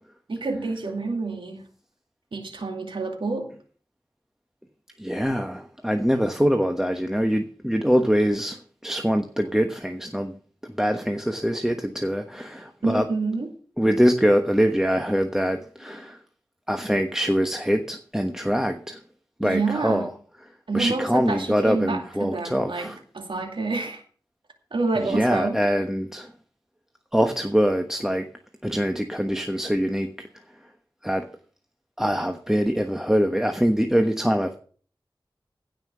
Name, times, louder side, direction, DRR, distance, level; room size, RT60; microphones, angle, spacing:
voice 1, 0.3-1.7 2.3-3.5 12.8-13.5 19.4-20.1 20.7-24.0 24.7-25.6, right 3 dB, 85° right, 2.4 m, -28 dB
voice 2, 5.0-10.3 10.6-13.1 13.8-16.2 16.7-19.0 19.4-20.1 20.7-23.0 25.0-26.3 27.1-28.3 28.6-30.1 31.0-31.2 32.0-34.5, equal, 5° right, 1.2 m, -23 dB
16.0 x 5.7 x 6.8 m
wide cardioid pair, 60°, 8 cm